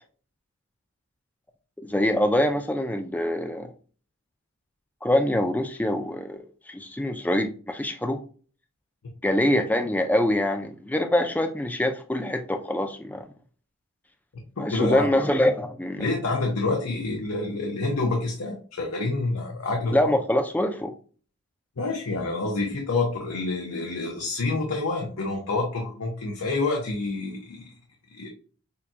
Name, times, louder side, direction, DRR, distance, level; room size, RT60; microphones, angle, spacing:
voice 1, 1.8-3.7 5.0-8.2 9.2-13.3 14.6-16.1 19.9-20.9, left 1 dB, 5° left, 0.4 m, -24 dB
voice 2, 14.6-15.1 16.0-20.1 21.8-27.7 28.1-28.3, left 3 dB, 90° left, 0.8 m, -28 dB
6.7 x 2.3 x 2.8 m
head